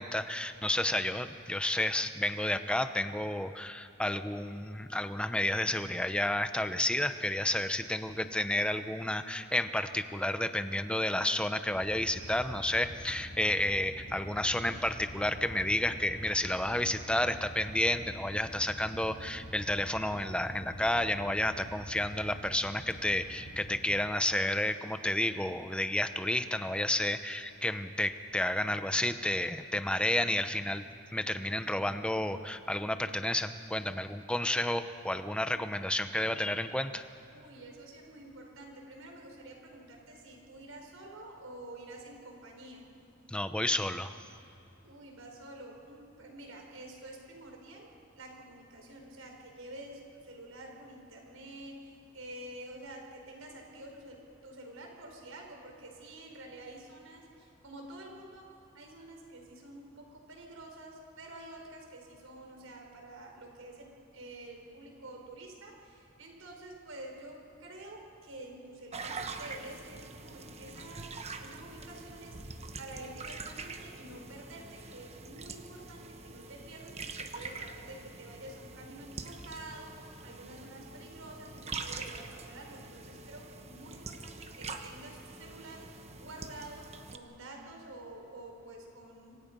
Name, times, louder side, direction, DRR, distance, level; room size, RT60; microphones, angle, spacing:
voice 1, 0.0-30.8 31.1-37.1 43.3-44.1, left 1 dB, 5° left, 10 dB, 0.8 m, -31 dB
sound 1, 11.7-23.8, equal, 35° left, 3.7 m, -46 dB
voice 2, 37.3-42.9 44.8-58.5 58.7-89.4, right 1 dB, 85° right, 1 dB, 4.8 m, -48 dB
sound 2, 68.9-87.2, right 4 dB, 30° right, 1.2 m, -44 dB
26.5 x 24.5 x 5.4 m, 2.7 s
head